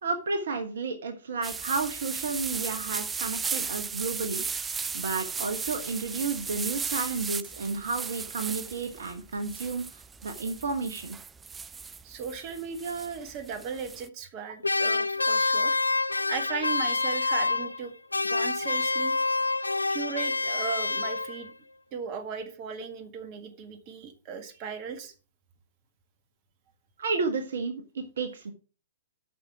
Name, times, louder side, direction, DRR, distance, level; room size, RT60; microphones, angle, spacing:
voice 1, 0.0-4.5 4.9-11.2 27.0-28.5, right 4 dB, 60° right, 8 dB, 1.2 m, -32 dB
sound 1, 1.4-14.1, right 5 dB, 15° right, 0.5 m, -36 dB
voice 2, 12.0-15.8 16.3-17.9 18.3-19.1 19.9-21.5 21.9-25.1, right 6 dB, 35° right, 8 dB, 1.8 m, -37 dB
sound 2, 14.6-17.9 18.1-21.5, left 3 dB, 80° left, 0.3 m, -27 dB
8.5 x 5.9 x 5.9 m, 0.35 s
figure-of-eight pair, 110°, 0 cm